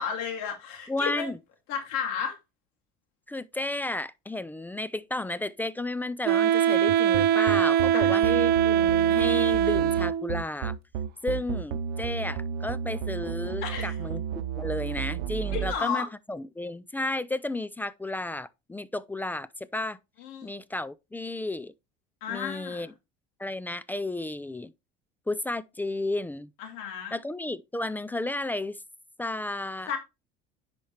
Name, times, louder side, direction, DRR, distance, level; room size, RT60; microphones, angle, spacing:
voice 1, 0.0-1.3 1.7-2.4 7.9-8.2 13.6-14.0 15.5-16.1 20.2-20.5 22.2-22.9 26.6-27.2 29.9-30.0, left 7 dB, 80° left, 2.4 m, -33 dB
voice 2, 0.9-1.4 3.3-10.8 11.2-14.2 14.6-20.0 20.4-21.7 22.3-22.9 23.4-24.7 25.3-26.5 27.1-28.8 29.2-29.9, left 2 dB, 10° left, 0.3 m, -33 dB
Wind instrument woodwind instrument, 6.3-10.4, right 10 dB, 50° right, 0.5 m, -22 dB
sound 1, 6.9-15.7, right 8 dB, 90° right, 0.7 m, -32 dB
10.0 x 4.3 x 3.1 m
cardioid pair, 115°, 21 cm